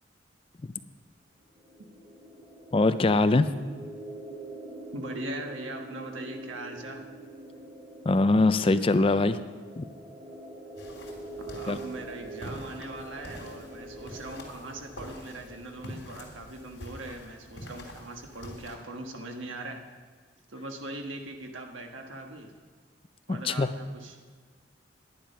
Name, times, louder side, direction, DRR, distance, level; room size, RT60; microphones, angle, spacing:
sound 1, 1.5-17.1, right 2 dB, 25° right, 3.0 m, -45 dB
voice 1, 2.7-3.5 8.1-9.4 9.8-9.9 11.7-11.8 23.3-23.7, left 2 dB, 30° left, 12 dB, 0.4 m, -22 dB
voice 2, 4.9-7.0 11.4-19.8 20.5-22.5 23.3-24.2, right 2 dB, 90° right, 3 dB, 1.4 m, -40 dB
sound 2, 10.8-18.8, left 1 dB, 70° left, 2.9 m, -45 dB
10.5 x 10.5 x 5.6 m, 1.5 s
head